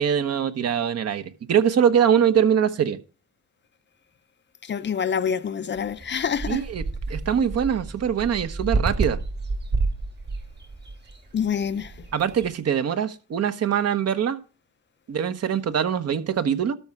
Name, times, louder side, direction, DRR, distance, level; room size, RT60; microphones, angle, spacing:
voice 1, 0.0-3.0 6.5-6.8 7.1-9.2 12.1-14.4 15.1-16.8, right 8 dB, 55° right, 1.1 m, -23 dB
voice 2, 4.6-6.6 11.3-12.1, left 7 dB, 40° left, 0.6 m, -27 dB
sound 1, 5.8-12.5, right 3 dB, 35° right, 1.5 m, -30 dB
13.0 x 4.8 x 5.6 m
cardioid pair, 90°, 30 cm